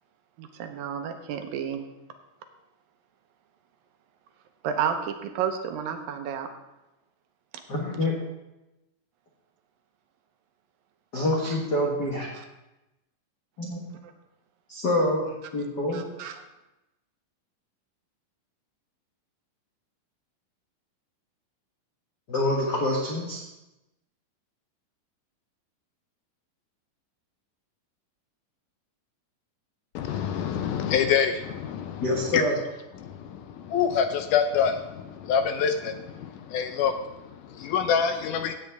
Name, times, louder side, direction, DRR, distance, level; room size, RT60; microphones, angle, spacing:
voice 1, 0.4-1.8 4.6-6.5 12.3-12.4 15.9-16.4, right 8 dB, 90° right, 6 dB, 2.7 m, -31 dB
voice 2, 7.7-8.1 11.1-12.3 13.6-13.8 14.7-15.2 15.5-16.0 22.3-23.4 32.0-32.6, left 1 dB, 45° left, -2 dB, 1.4 m, -26 dB
voice 3, 29.9-32.4 33.0-38.5, left 7 dB, 75° left, 8 dB, 2.0 m, -26 dB
16.0 x 8.7 x 3.5 m, 0.98 s
omnidirectional pair, 4.0 m